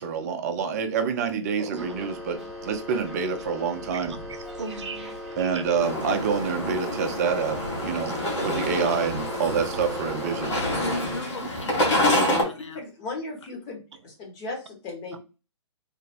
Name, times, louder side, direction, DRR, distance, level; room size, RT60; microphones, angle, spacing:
voice 1, 0.0-4.1 5.4-8.1 8.4-10.5 11.4-11.5, right 6 dB, 35° right, 0.6 m, -27 dB
voice 2, 1.6-2.0 3.9-5.9 8.1-8.7 9.1-9.6, right 5 dB, 70° right, 0.7 m, -40 dB
sound 1, 1.7-11.2, left 1 dB, 5° right, 0.7 m, -38 dB
sound 2, 5.8-12.4, left 1 dB, 70° left, 1.8 m, -27 dB
voice 3, 10.6-12.8, left 4 dB, 90° left, 0.8 m, -40 dB
voice 4, 12.2-15.2, left 3 dB, 25° left, 1.1 m, -36 dB
3.4 x 2.2 x 4.1 m
hypercardioid pair, 150°, 15 cm